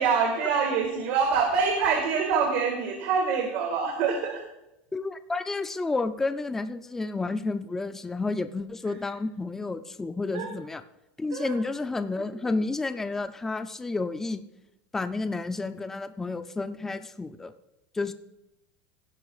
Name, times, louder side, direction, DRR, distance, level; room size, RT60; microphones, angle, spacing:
voice 1, 0.0-4.4 10.3-10.5 11.3-11.6, right 5 dB, 55° right, 1 dB, 1.8 m, -25 dB
voice 2, 4.9-10.8 11.2-14.4 14.9-17.5 17.9-18.1, left 3 dB, 5° left, 10 dB, 0.4 m, -31 dB
17.0 x 10.5 x 2.4 m, 0.90 s
supercardioid pair, 170°, 6 cm